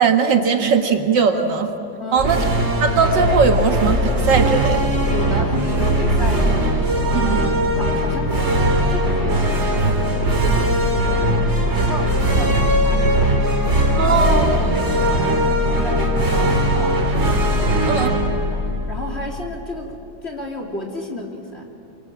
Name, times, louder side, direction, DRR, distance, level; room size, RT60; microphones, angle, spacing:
voice 1, 0.0-1.7 2.1-2.4 2.8-4.8 7.1-7.5 13.9-14.4 17.9-18.1, right 5 dB, 65° right, 5 dB, 2.1 m, -19 dB
voice 2, 2.0-2.3 5.1-6.6 7.1-13.4 14.0-14.2 14.5-17.0 17.6-21.7, left 1 dB, 30° left, 0 dB, 3.3 m, -32 dB
sound 1, 2.2-19.6, equal, 35° right, 2.7 m, -19 dB
28.5 x 24.0 x 8.7 m, 2.7 s
omnidirectional pair, 2.2 m